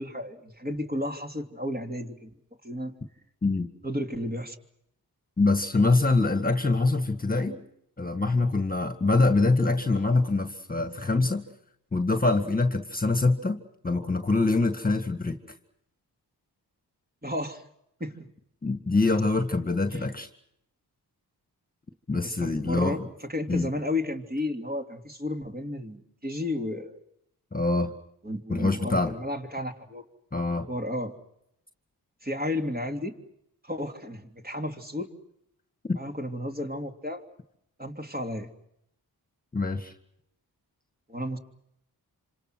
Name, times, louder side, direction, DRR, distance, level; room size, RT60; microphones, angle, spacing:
voice 1, 0.0-2.3 2.6-2.9 3.8-4.6 17.2-17.6 18.0-18.2 19.9-20.0 22.2-23.0 23.3-27.0 28.2-30.0 30.7-31.2 32.2-33.1 33.6-35.1 35.9-37.2 37.8-38.5 41.1-41.4, left 1 dB, 25° right, 3 dB, 3.2 m, -33 dB
voice 2, 5.4-7.6 8.0-11.4 11.9-15.4 18.6-20.3 22.1-23.0 23.5-23.7 27.5-27.9 28.5-29.1 30.3-30.7 35.9-36.0 39.5-39.9, left 3 dB, 20° left, 7 dB, 1.9 m, -24 dB
27.0 x 26.5 x 6.2 m, 0.77 s
cardioid pair, 65°, 39 cm